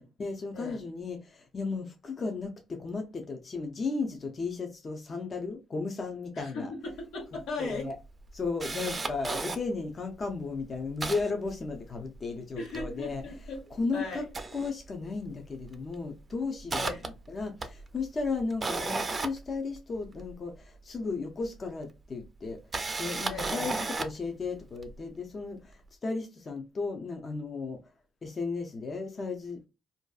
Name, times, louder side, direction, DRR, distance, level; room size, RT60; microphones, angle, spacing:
voice 1, 0.2-6.7 7.6-8.0 8.3-13.2 13.7-14.3 14.5-16.9 17.3-22.6 23.0-27.8 28.2-29.7, left 4 dB, 40° left, 0.4 m, -35 dB
voice 2, 6.4-7.9 12.6-14.2 16.8-17.1 23.3-23.7, left 3 dB, 85° left, 1.3 m, -38 dB
Camera, 7.0-7.1 7.4-7.5 7.9-9.6 10.2-10.3 10.6-12.2 12.5-13.8 14.2-15.3 15.6-15.9 16.3-20.3 21.4-21.5 22.5-24.3 24.8-25.0, right 3 dB, 30° right, 0.4 m, -35 dB
2.5 x 2.3 x 2.3 m
cardioid pair, 90°, 0 cm